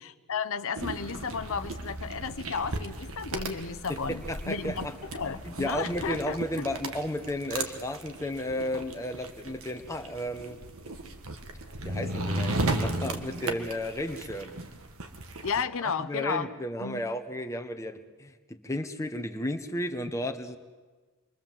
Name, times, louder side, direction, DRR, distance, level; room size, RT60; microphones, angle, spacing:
voice 1, 0.0-4.9 5.1-6.4 15.4-16.5 16.8-17.1, left 5 dB, 65° left, 11 dB, 0.8 m, -33 dB
sound 1, 0.8-15.6, right 2 dB, 65° right, 1.9 m, -36 dB
voice 2, 3.9-5.0 5.3-10.6 11.8-14.5 15.8-20.6, left 1 dB, 15° left, 5 dB, 1.2 m, -33 dB
27.0 x 23.0 x 7.6 m, 1.4 s
head